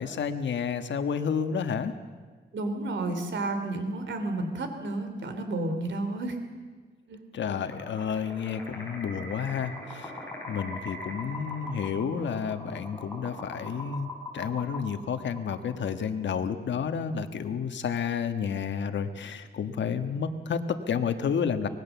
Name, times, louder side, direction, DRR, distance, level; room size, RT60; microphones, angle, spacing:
voice 1, 0.0-1.9 7.3-10.1 10.5-21.7, left 7 dB, 85° left, 9 dB, 1.5 m, -30 dB
voice 2, 2.5-6.4 7.1-7.2, right 2 dB, 85° right, 7 dB, 3.1 m, -31 dB
sound 1, 7.6-16.1, left 1 dB, 10° left, 6.7 m, -41 dB
25.0 x 20.0 x 7.1 m, 1.5 s
wide cardioid pair, 115°, 18 cm